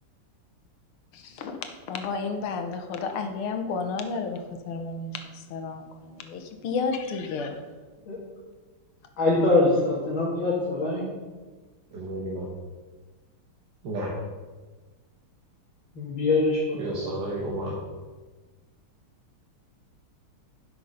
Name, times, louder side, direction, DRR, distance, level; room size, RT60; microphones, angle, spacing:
voice 1, 1.1-1.6 1.9-7.6, left 4 dB, 85° left, 6 dB, 1.9 m, -32 dB
voice 2, 9.2-11.1 15.9-17.0, left 2 dB, 60° left, -7 dB, 2.9 m, -23 dB
voice 3, 11.9-12.5 13.8-14.1 16.7-17.7, right 1 dB, 55° right, -3 dB, 1.9 m, -32 dB
11.5 x 5.9 x 5.5 m, 1.3 s
omnidirectional pair, 2.4 m